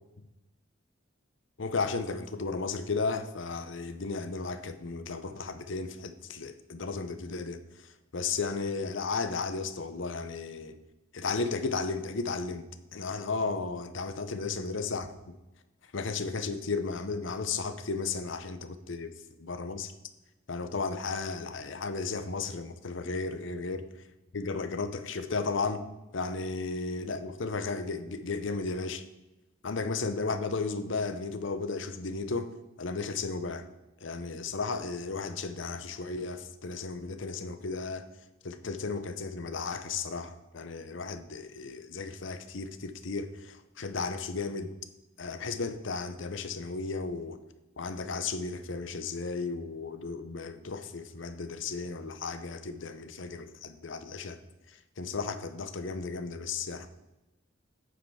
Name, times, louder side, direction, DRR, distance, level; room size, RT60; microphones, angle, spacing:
voice 1, 1.6-7.6 8.1-10.8 11.1-12.6 12.9-15.3 15.9-19.1 19.4-19.9 20.5-23.8 24.3-25.8 26.1-29.0 29.6-33.7 34.0-38.0 38.4-44.7 45.2-47.4 47.8-54.4 55.0-56.9, left 4 dB, 65° left, 0.7 m, -34 dB
8.9 x 5.2 x 4.9 m
head